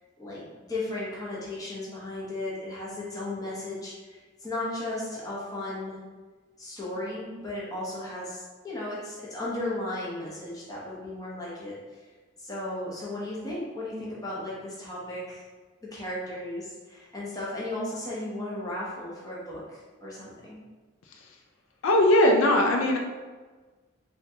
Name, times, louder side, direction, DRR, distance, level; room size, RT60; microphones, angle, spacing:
voice 1, 0.2-6.0 6.6-11.7 12.4-15.4 15.8-20.6, left 1 dB, 20° left, -7 dB, 0.8 m, -35 dB
voice 2, 21.8-23.0, left 1 dB, 90° left, 1 dB, 0.4 m, -20 dB
3.6 x 2.3 x 2.8 m, 1.3 s
head